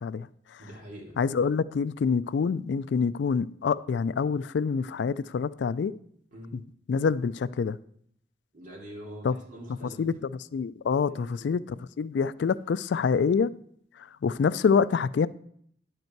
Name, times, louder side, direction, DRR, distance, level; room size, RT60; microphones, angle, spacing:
voice 1, 0.6-1.2 6.3-6.6 8.5-10.0 11.1-11.5, equal, 45° right, 3.2 m, -44 dB
voice 2, 1.2-5.9 6.9-7.8 9.2-9.3 10.0-10.1 10.5-13.5 14.2-15.3, left 5 dB, 65° left, 0.3 m, -26 dB
10.5 x 8.0 x 4.5 m
head